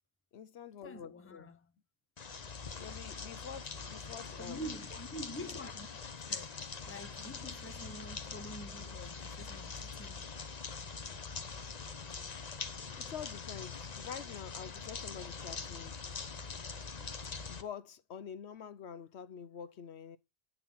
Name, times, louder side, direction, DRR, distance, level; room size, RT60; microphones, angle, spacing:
voice 1, 0.3-1.5 2.7-4.6 13.0-16.0 17.5-20.2, left 8 dB, 75° left, 1.0 m, -47 dB
voice 2, 0.8-1.7 4.4-5.9 6.3-10.3 17.0-17.1, equal, 15° left, 0.8 m, -47 dB
sound 1, 2.2-17.6, left 5 dB, 40° left, 1.0 m, -43 dB
9.2 x 6.6 x 5.6 m
omnidirectional pair, 1.1 m